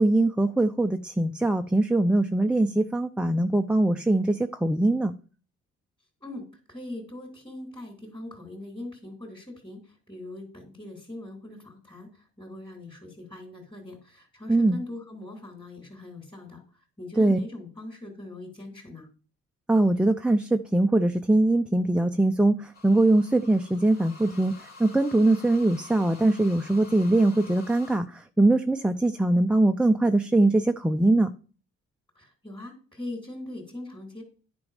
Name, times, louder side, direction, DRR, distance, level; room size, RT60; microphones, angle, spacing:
voice 1, 0.0-5.1 14.5-14.8 17.2-17.4 19.7-31.3, right 2 dB, 5° right, 5 dB, 0.5 m, -22 dB
voice 2, 6.7-16.6 17.0-19.1 32.1-34.2, left 2 dB, 15° left, 0 dB, 3.3 m, -41 dB
sound 1, 22.7-28.0, left 3 dB, 30° left, 3.2 m, -49 dB
9.5 x 5.2 x 5.0 m, 0.38 s
cardioid pair, 90°, 30 cm